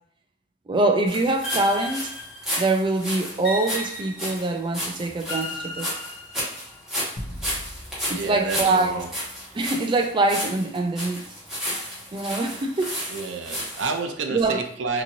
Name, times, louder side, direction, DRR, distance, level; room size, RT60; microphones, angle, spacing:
voice 1, 0.7-2.1 2.6-5.9 8.1-9.0 9.5-11.3 12.1-12.9 14.3-14.6, right 2 dB, 25° right, 4 dB, 0.3 m, -24 dB
sound 1, 1.1-14.0, equal, 5° right, 1.2 m, -33 dB
sound 2, 1.4-2.8 3.4-4.6 5.3-6.8, left 1 dB, 75° left, 1.1 m, -35 dB
sound 3, 7.2-9.8, equal, 35° left, 0.5 m, -40 dB
voice 2, 8.1-9.1 13.1-15.0, right 4 dB, 90° right, 5 dB, 0.5 m, -29 dB
2.9 x 2.6 x 2.6 m, 0.63 s
head